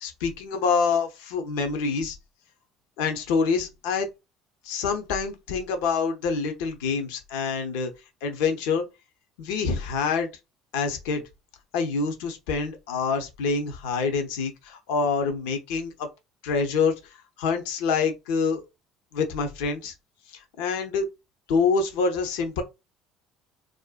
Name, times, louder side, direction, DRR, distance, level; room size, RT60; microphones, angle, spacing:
voice 1, 0.0-2.2 3.0-4.1 4.6-7.9 8.2-8.9 9.4-10.3 10.7-11.2 11.7-16.1 16.4-16.9 17.4-18.6 19.1-19.9 20.6-21.1 21.5-22.6, left 5 dB, 75° left, 0.5 m, -26 dB
2.5 x 2.1 x 2.3 m
hypercardioid pair, 70°, 0 cm